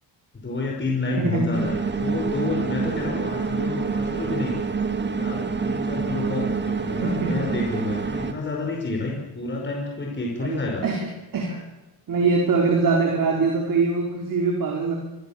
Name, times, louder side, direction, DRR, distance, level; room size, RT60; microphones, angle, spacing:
voice 1, 0.3-4.6 5.2-10.9, left 3 dB, 25° left, 0 dB, 5.3 m, -29 dB
voice 2, 1.1-1.6 3.1-3.2 6.8-7.4 9.1-9.2 10.4-11.7 12.1-15.0, right 4 dB, 45° right, 1 dB, 4.4 m, -23 dB
sound 1, 1.5-8.3, right 5 dB, 20° right, 2.3 m, -27 dB
25.5 x 22.5 x 7.4 m, 1.1 s
cardioid pair, 105°, 47 cm